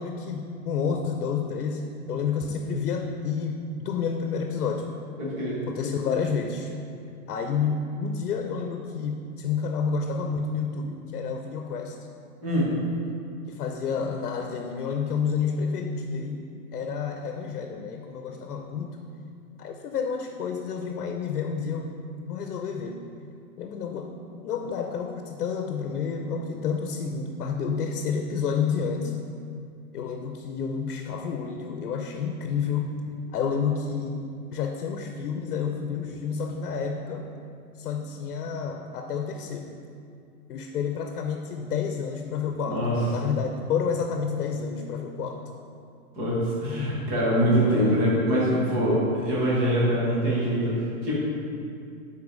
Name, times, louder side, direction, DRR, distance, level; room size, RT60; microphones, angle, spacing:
voice 1, 0.0-4.9 5.7-6.7 7.3-12.0 13.5-19.0 19.6-22.0 22.3-23.0 23.6-24.1 24.4-29.2 29.9-33.0 33.3-34.3 34.5-37.3 37.8-39.7 40.5-42.8 43.1-45.5, left 6 dB, 80° left, 4 dB, 0.8 m, -29 dB
voice 2, 5.2-5.6 12.4-12.7 42.7-43.1 46.1-51.1, equal, 10° right, -7 dB, 0.5 m, -24 dB
7.2 x 4.3 x 4.9 m, 2.4 s
hypercardioid pair, 170°, 44 cm